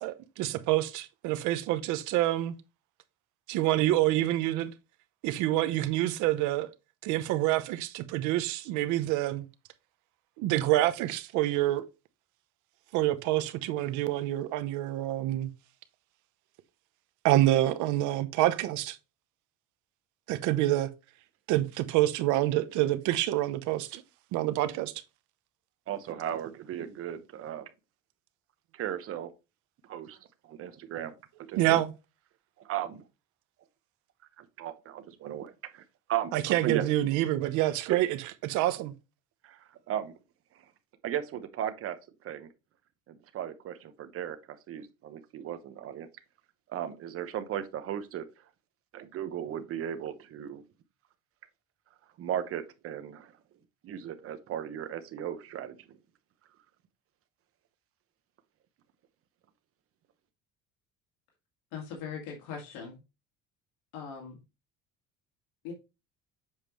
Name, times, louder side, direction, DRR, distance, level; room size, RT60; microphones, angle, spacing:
voice 1, 0.0-2.5 3.5-4.7 5.2-6.7 7.0-9.5 10.4-11.9 12.9-15.5 17.2-19.0 20.3-20.9 21.5-24.0 24.3-24.9 31.6-31.9 36.3-38.9, right 15 dB, 75° right, 0.9 m, -27 dB
voice 2, 25.9-27.7 28.7-29.3 29.9-30.2 30.4-31.1 31.5-31.8 32.6-33.0 34.4-35.8 36.1-36.8 37.9-38.0 39.4-40.1 41.0-42.0 42.2-42.5 43.1-46.1 46.7-48.3 48.9-50.6 52.2-53.3 53.8-56.0, right 10 dB, 50° right, 1.0 m, -36 dB
voice 3, 61.7-63.0 63.9-64.4 65.6-65.7, left 6 dB, 80° left, 2.0 m, -40 dB
7.3 x 5.0 x 3.1 m
cardioid pair, 135°, 30 cm